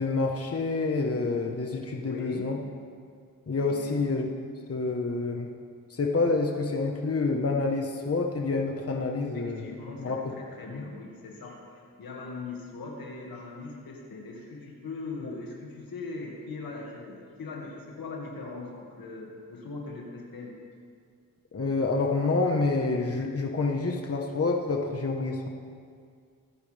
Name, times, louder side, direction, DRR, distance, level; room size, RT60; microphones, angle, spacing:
voice 1, 0.0-2.6 3.5-4.3 4.7-5.5 5.9-9.6 10.0-10.2 10.7-10.8 21.5-25.5, left 3 dB, 45° left, 1 dB, 1.4 m, -28 dB
voice 2, 2.0-2.6 3.7-4.0 9.1-20.6, left 3 dB, 80° left, -1 dB, 2.2 m, -40 dB
24.0 x 9.4 x 3.5 m, 2.1 s
cardioid pair, 55°, 34 cm